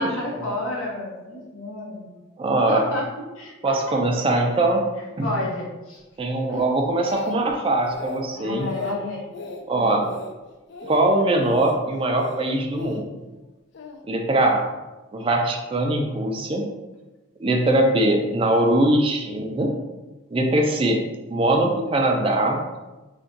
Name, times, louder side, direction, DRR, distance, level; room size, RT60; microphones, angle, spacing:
voice 1, 0.0-2.1 2.7-3.7 5.2-6.0 6.5-6.6 8.3-9.3 9.8-10.0, left 1 dB, 90° left, -3 dB, 0.9 m, -31 dB
voice 2, 2.4-2.8 3.6-4.8 5.2-5.3 6.2-8.7 9.7-10.1 10.8-13.1 14.1-14.6 15.1-16.6 17.4-19.7 20.3-21.0 21.3-22.6, right 1 dB, 25° right, 2 dB, 0.3 m, -21 dB
Speech, 6.5-7.5 7.8-8.2 8.6-9.0 9.3-9.6 10.0-10.3 10.7-11.0 11.4-11.8 12.2-13.0 13.7-14.0, left 3 dB, 55° left, 0.3 m, -36 dB
2.5 x 2.2 x 3.7 m, 1.1 s
head